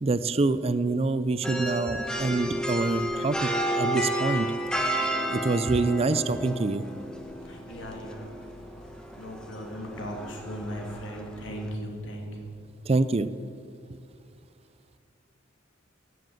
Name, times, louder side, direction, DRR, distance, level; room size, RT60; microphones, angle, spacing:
voice 1, 0.0-4.5 5.3-6.8 12.9-13.3, right 3 dB, 30° right, 15 dB, 0.4 m, -26 dB
sound 1, 1.4-11.7, right 1 dB, 5° left, 1.1 m, -32 dB
voice 2, 7.4-8.3 9.2-12.5, equal, 80° left, 1 dB, 2.7 m, -37 dB
15.0 x 7.7 x 7.8 m, 2.4 s
head